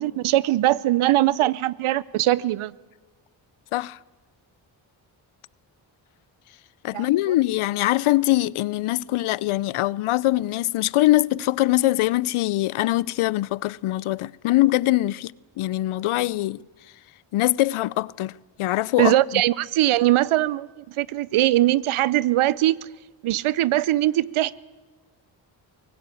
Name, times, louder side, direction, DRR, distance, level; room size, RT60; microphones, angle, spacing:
voice 1, 0.0-2.7 6.9-7.1 19.0-22.9 23.2-24.5, right 15 dB, 75° right, 0.8 m, -21 dB
voice 2, 6.8-16.6 17.3-18.3 18.6-19.4, left 16 dB, 75° left, 0.6 m, -23 dB
23.0 x 19.0 x 8.4 m
supercardioid pair, 50°, 50 cm